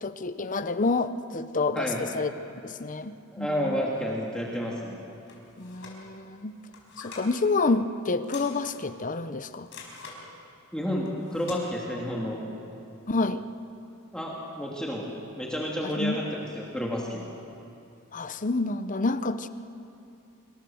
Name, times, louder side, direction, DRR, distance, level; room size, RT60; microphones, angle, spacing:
voice 1, 0.0-2.3 2.6-3.9 5.6-6.6 7.0-9.7 13.1-13.4 15.8-16.2 18.1-19.5, left 3 dB, 35° left, 12 dB, 0.8 m, -28 dB
voice 2, 1.7-2.1 3.3-5.0 10.7-12.4 14.1-15.1 15.4-17.2, equal, 5° left, -3 dB, 2.5 m, -30 dB
sound 1, 5.3-6.0 6.6-7.3 8.2-8.9 9.7-10.2 11.1-11.6, left 4 dB, 60° left, 5.0 m, -45 dB
26.0 x 24.0 x 7.1 m, 2.8 s
head